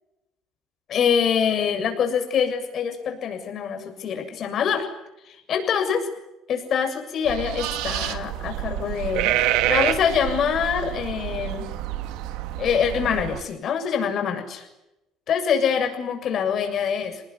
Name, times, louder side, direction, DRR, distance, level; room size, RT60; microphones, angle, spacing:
voice 1, 0.9-4.9 5.3-6.1 6.5-9.4 9.7-11.7 12.6-14.7 15.3-17.2, left 7 dB, 40° left, 6 dB, 7.2 m, -25 dB
sound 1, 7.2-13.4, right 13 dB, 80° right, 2.6 m, -27 dB
28.0 x 20.5 x 9.8 m, 0.92 s
cardioid pair, 160°, 0 cm